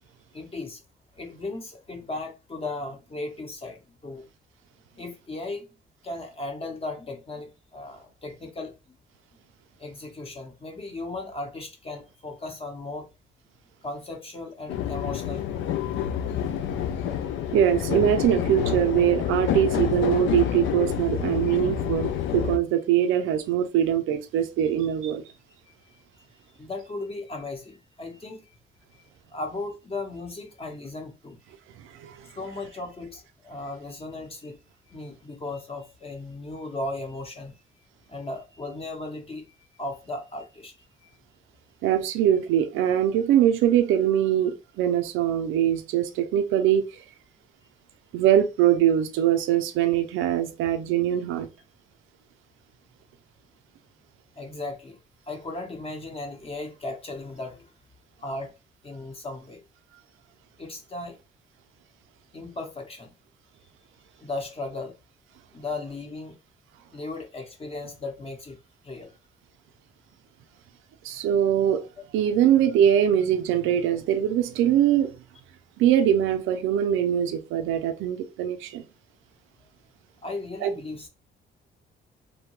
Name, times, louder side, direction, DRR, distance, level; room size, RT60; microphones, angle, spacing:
voice 1, 0.3-0.8 1.1-4.3 5.0-5.7 6.0-9.0 9.8-13.1 13.8-16.7 25.7-26.3 26.5-28.6 28.9-29.0 29.3-31.4 32.4-34.6 34.9-37.6 38.1-41.2 54.4-55.0 55.3-57.7 58.2-58.5 58.8-59.6 60.6-61.2 62.3-63.1 64.2-65.0 65.5-66.4 66.9-68.6 68.8-69.1 72.0-72.1 80.2-81.1, left 2 dB, 30° left, 0.9 m, -36 dB
sound 1, 14.7-22.6, left 9 dB, 75° left, 0.4 m, -28 dB
voice 2, 17.5-25.2 31.9-32.2 41.8-47.0 48.1-51.5 71.0-71.8 72.1-75.1 75.8-78.8 80.6-80.7, right 10 dB, 90° right, 0.4 m, -22 dB
2.7 x 2.1 x 3.0 m
cardioid pair, 90°, 20 cm